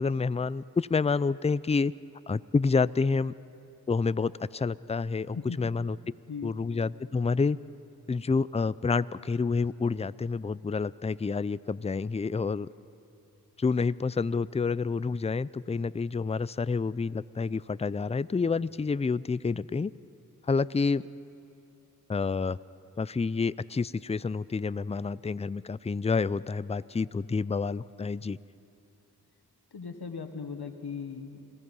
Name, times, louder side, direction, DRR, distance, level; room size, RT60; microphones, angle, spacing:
voice 1, 0.0-1.9 2.3-3.3 3.9-6.0 6.4-7.6 8.1-12.7 13.6-19.9 20.5-21.0 22.1-22.6 23.0-28.4, left 4 dB, 20° left, 18 dB, 0.4 m, -28 dB
voice 2, 5.3-5.8 6.3-6.5 29.7-31.4, left 5 dB, 85° left, 6 dB, 1.5 m, -38 dB
28.5 x 18.5 x 5.5 m, 2.7 s
cardioid pair, 40°, 38 cm